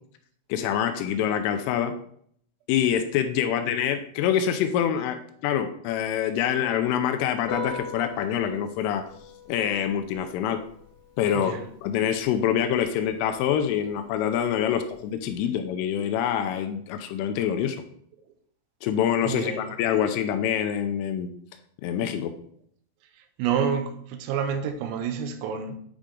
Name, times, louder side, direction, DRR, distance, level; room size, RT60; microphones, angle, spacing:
voice 1, 0.5-1.9 2.7-9.1 9.5-10.6 11.2-17.8 18.8-21.3 21.8-22.3, left 9 dB, 85° left, 6 dB, 3.0 m, -26 dB
Piano, 7.4-15.4, left 2 dB, 65° left, 4.2 m, -43 dB
voice 2, 19.2-19.6 23.4-25.8, right 7 dB, 85° right, 7 dB, 3.4 m, -28 dB
9.7 x 3.7 x 3.7 m, 0.64 s
omnidirectional pair, 5.9 m